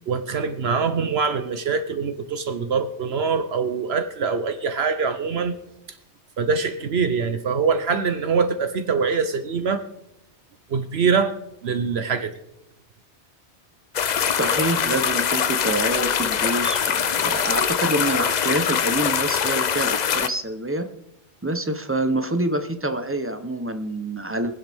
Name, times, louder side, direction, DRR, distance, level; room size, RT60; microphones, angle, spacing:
voice 1, 0.1-5.5 6.4-9.8 10.7-11.3 11.6-12.3, right 5 dB, 65° right, 10 dB, 1.0 m, -23 dB
sound 1, 13.9-20.3, left 8 dB, 50° left, 0.5 m, -23 dB
voice 2, 14.3-20.9 21.4-24.6, right 1 dB, 15° right, 8 dB, 0.7 m, -26 dB
23.5 x 7.9 x 3.5 m, 0.86 s
omnidirectional pair, 1.2 m